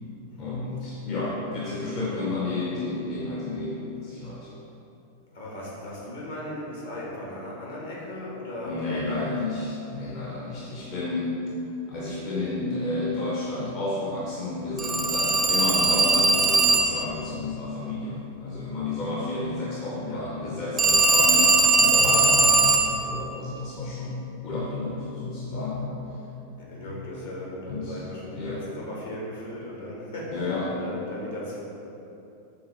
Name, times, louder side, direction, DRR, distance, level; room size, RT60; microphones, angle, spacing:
voice 1, 0.4-4.5 8.6-11.4 11.9-25.9 26.9-27.1 27.7-28.0 28.3-28.6 30.3-30.8, left 2 dB, 40° left, -5 dB, 0.6 m, -31 dB
voice 2, 5.3-9.3 20.1-20.5 26.6-31.6, left 1 dB, 65° left, -5 dB, 1.2 m, -37 dB
Telephone, 14.8-17.1 20.8-23.0, right 3 dB, 15° right, 0.4 m, -20 dB
4.7 x 3.4 x 3.2 m, 2.9 s
figure-of-eight pair, 90°, 0 cm